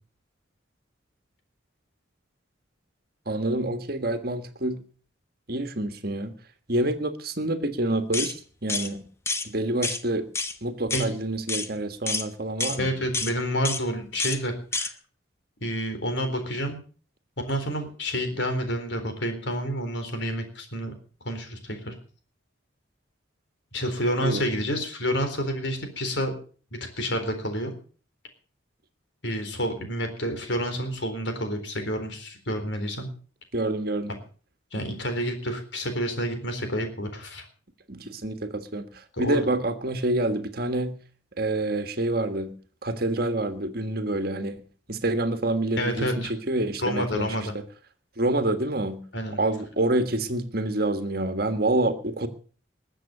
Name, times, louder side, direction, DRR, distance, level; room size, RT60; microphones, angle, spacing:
voice 1, 3.2-4.8 5.5-6.3 6.7-9.0 9.4-10.2 10.6-12.9 24.2-24.4 33.5-34.1 37.9-41.0 41.4-42.5 42.8-44.6 44.9-47.3 48.2-49.0 49.3-52.3, right 1 dB, 50° right, 8 dB, 1.6 m, -27 dB
sound 1, 8.1-8.3 8.7-8.9 9.3-9.5 9.8-10.0 10.4-10.5 10.9-11.1 11.5-11.7 12.1-12.3 12.6-12.8 13.1-13.3 13.7-13.8 14.2-14.4 14.7-14.9, left 3 dB, 15° left, 0.9 m, -28 dB
voice 2, 12.8-14.9 15.6-16.8 17.4-20.9 21.2-21.9 23.7-26.4 26.7-27.7 29.2-33.1 34.7-37.5 39.2-39.5 45.8-46.3 46.8-47.5 49.1-49.4, equal, 65° left, 6 dB, 4.0 m, -29 dB
21.0 x 7.7 x 6.7 m, 0.42 s
head